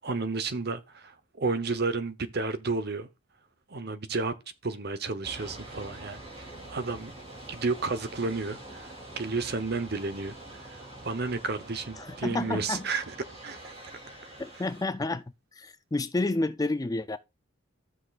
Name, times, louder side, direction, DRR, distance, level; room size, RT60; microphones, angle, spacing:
voice 1, 0.0-3.1 3.7-4.4 4.6-7.1 7.5-13.1 13.4-13.7, right 3 dB, 50° right, 0.9 m, -32 dB
sound 1, 5.2-14.9, right 1 dB, 25° right, 2.6 m, -45 dB
voice 2, 12.0-12.9 14.4-15.2 15.5-17.2, left 2 dB, 15° left, 0.4 m, -30 dB
14.0 x 6.2 x 2.4 m
head